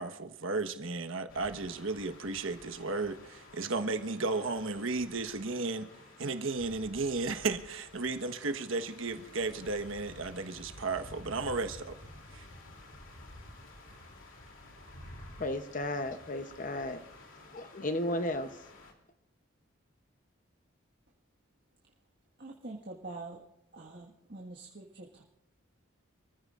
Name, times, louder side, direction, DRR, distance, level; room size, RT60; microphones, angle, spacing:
voice 1, 0.0-5.9 6.2-11.9 12.3-12.5, right 3 dB, 75° right, 8 dB, 1.3 m, -34 dB
sound 1, 1.3-18.9, left 1 dB, 70° left, 2.9 m, -52 dB
voice 2, 15.4-17.0 17.5-18.5, left 1 dB, 40° left, 8 dB, 0.8 m, -34 dB
voice 3, 22.4-23.4 23.7-25.2, right 2 dB, 55° right, -2 dB, 1.7 m, -45 dB
27.5 x 14.5 x 2.5 m, 0.93 s
head